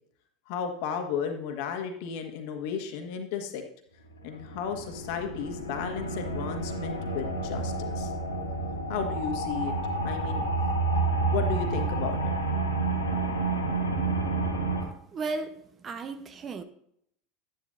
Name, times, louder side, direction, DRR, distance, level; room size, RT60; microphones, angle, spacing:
voice 1, 0.5-3.6 4.2-8.1 8.9-9.7 10.0-10.5 11.3-12.2, left 6 dB, 55° left, 5 dB, 1.4 m, -34 dB
sound 1, 4.2-14.8, right 3 dB, 80° left, 2.0 m, -29 dB
voice 2, 15.1-15.5 15.8-16.6, right 3 dB, 30° right, 10 dB, 0.9 m, -34 dB
11.5 x 10.5 x 2.6 m, 0.69 s
figure-of-eight pair, 80°, 0 cm